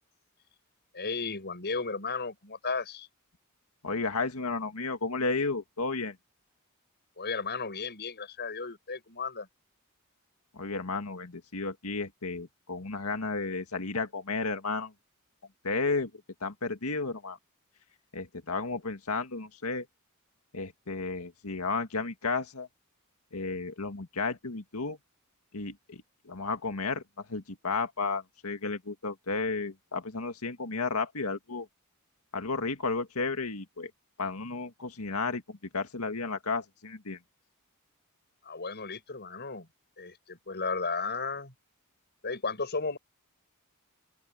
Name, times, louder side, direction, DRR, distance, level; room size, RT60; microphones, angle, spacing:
voice 1, 0.9-3.1 7.2-9.5 38.4-39.7 40.0-41.5 42.2-43.0, left 4 dB, 50° left, 7.0 m, -34 dB
voice 2, 3.8-6.2 10.5-14.9 15.6-16.1 16.4-17.4 18.1-19.9 20.5-22.7 23.3-25.0 25.5-31.7 32.3-33.9 34.2-37.2, left 3 dB, 85° left, 2.0 m, -33 dB
open air
head